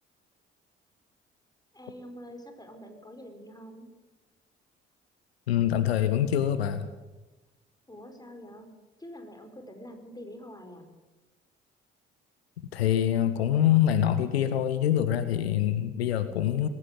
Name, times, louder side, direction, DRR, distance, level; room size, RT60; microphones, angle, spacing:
voice 1, 1.7-3.9 7.9-8.7 9.0-10.9, equal, 10° left, 5 dB, 4.9 m, -45 dB
voice 2, 5.5-6.9 12.7-16.7, left 10 dB, 80° left, 11 dB, 0.9 m, -25 dB
19.5 x 17.0 x 8.1 m, 1.1 s
figure-of-eight pair, 40°, 31 cm